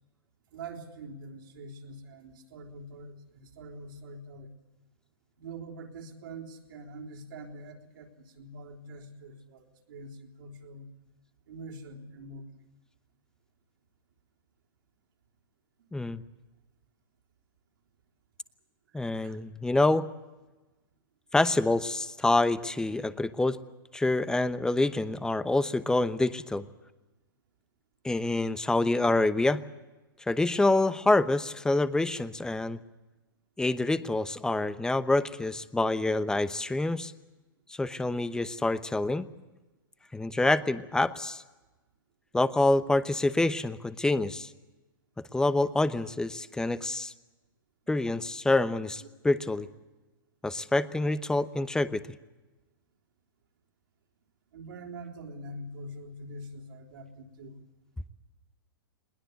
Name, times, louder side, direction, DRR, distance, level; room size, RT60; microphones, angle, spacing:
voice 1, 0.5-4.6 5.4-10.9 11.5-12.6 18.9-19.4 54.5-57.6, right 2 dB, 65° right, 2 dB, 3.6 m, -44 dB
voice 2, 15.9-16.2 18.9-20.1 21.3-23.6 23.9-26.6 28.0-29.6 30.3-32.8 33.6-37.1 37.7-39.3 40.1-41.4 42.3-44.5 45.3-47.1 47.9-49.7 50.4-52.0, left 2 dB, 5° left, 14 dB, 0.9 m, -26 dB
21.0 x 19.5 x 8.1 m, 1.1 s
hypercardioid pair, 120°, 12 cm